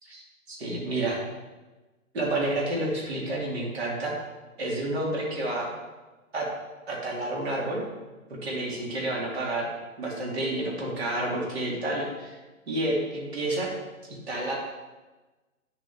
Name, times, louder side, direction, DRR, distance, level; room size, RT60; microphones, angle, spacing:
voice 1, 0.5-1.2 2.1-4.1 4.6-5.7 6.3-6.5 6.9-7.8 8.3-9.7 10.0-12.4 12.7-13.7 14.1-14.5, right 1 dB, 45° right, -3 dB, 2.5 m, -29 dB
9.4 x 6.9 x 3.6 m, 1.2 s
hypercardioid pair, 170°, 42 cm